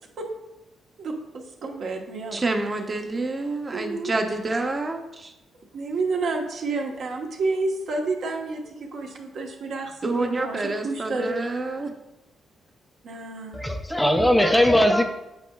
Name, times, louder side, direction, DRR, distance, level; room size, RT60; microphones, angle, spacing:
voice 1, 1.0-2.4 3.7-4.1 5.7-11.4 13.0-13.6, right 3 dB, 65° right, 1 dB, 1.1 m, -30 dB
voice 2, 2.3-5.3 10.0-11.9, right 2 dB, 25° right, 5 dB, 0.7 m, -28 dB
voice 3, 13.5-15.0, equal, 5° left, 5 dB, 0.4 m, -19 dB
8.3 x 5.5 x 2.3 m, 0.97 s
cardioid pair, 105°, 0 cm